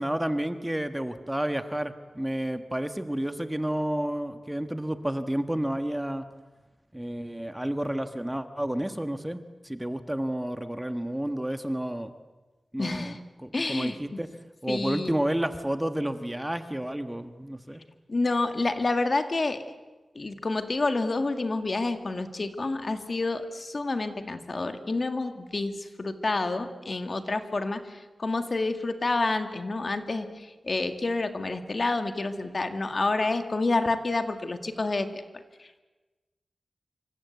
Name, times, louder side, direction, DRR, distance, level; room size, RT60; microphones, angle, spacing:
voice 1, 0.0-6.3 6.9-12.1 12.7-13.1 13.4-14.3 14.6-17.8, right 1 dB, 10° right, 8 dB, 1.3 m, -30 dB
voice 2, 12.8-13.2 13.5-14.2 14.7-15.2 18.1-19.7 20.2-35.2 35.6-35.8, left 3 dB, 45° left, 7 dB, 2.0 m, -29 dB
27.0 x 25.0 x 8.1 m, 1.2 s
wide cardioid pair, 100°, 0 cm